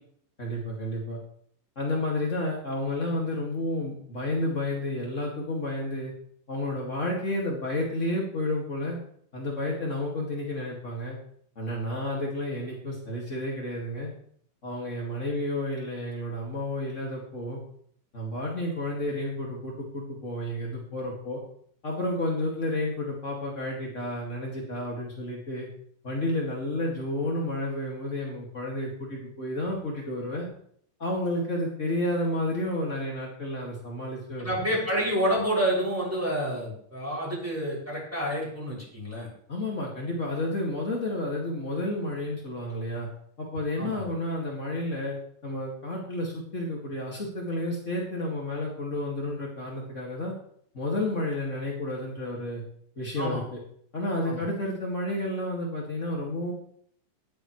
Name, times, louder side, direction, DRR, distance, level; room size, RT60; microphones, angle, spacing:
voice 1, 0.4-1.2 1.7-6.1 6.5-9.0 9.3-11.2 11.5-14.1 14.6-17.6 18.1-21.4 21.8-25.7 26.0-30.5 31.0-34.5 39.5-43.1 43.4-45.2 45.4-50.3 50.7-52.6 52.9-53.4 53.9-56.5, left 1 dB, 55° left, -3 dB, 0.8 m, -31 dB
voice 2, 34.4-39.3 43.8-44.1 53.2-53.4 54.2-54.4, equal, 5° right, -5 dB, 6.0 m, -28 dB
18.5 x 9.8 x 3.2 m, 0.63 s
omnidirectional pair, 5.3 m